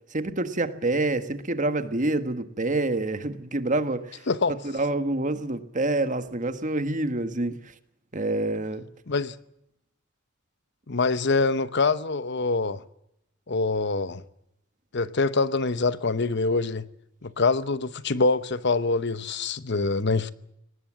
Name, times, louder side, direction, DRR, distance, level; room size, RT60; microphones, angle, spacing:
voice 1, 0.1-4.2 4.7-7.6 8.1-8.8, right 2 dB, 40° right, 1.6 m, -27 dB
voice 2, 4.3-4.6 9.1-9.4 10.9-12.8 13.5-14.2 14.9-16.8 17.2-20.3, left 3 dB, 60° left, 0.9 m, -25 dB
22.5 x 19.0 x 7.5 m
head